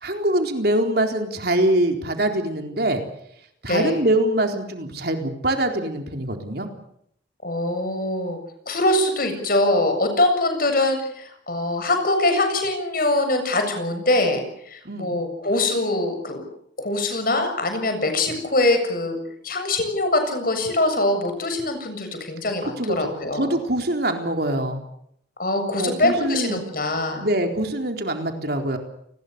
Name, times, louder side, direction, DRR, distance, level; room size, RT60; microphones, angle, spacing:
voice 1, 0.0-3.0 3.6-6.7 14.8-15.1 22.8-24.8 25.7-26.6 27.2-28.8, right 1 dB, 55° right, 5 dB, 4.1 m, -24 dB
voice 2, 3.7-4.0 7.4-8.4 8.7-16.4 16.8-19.2 19.4-23.5 25.4-27.3, left 2 dB, 50° left, 6 dB, 7.4 m, -23 dB
29.5 x 21.0 x 6.9 m, 0.71 s
head